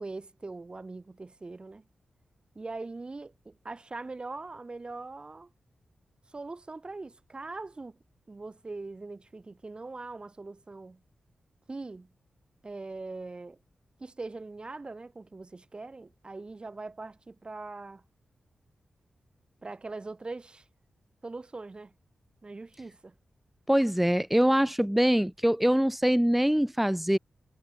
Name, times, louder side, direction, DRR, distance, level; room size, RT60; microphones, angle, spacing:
voice 1, 0.0-1.8 2.5-5.5 6.3-8.0 8.3-11.0 11.7-12.1 12.6-13.6 14.0-18.0 19.6-20.6 21.2-21.9 22.4-23.1, right 3 dB, 40° right, 3.4 m, -41 dB
voice 2, 23.7-27.2, equal, 5° right, 1.4 m, -24 dB
supercardioid pair, 45°, 3 cm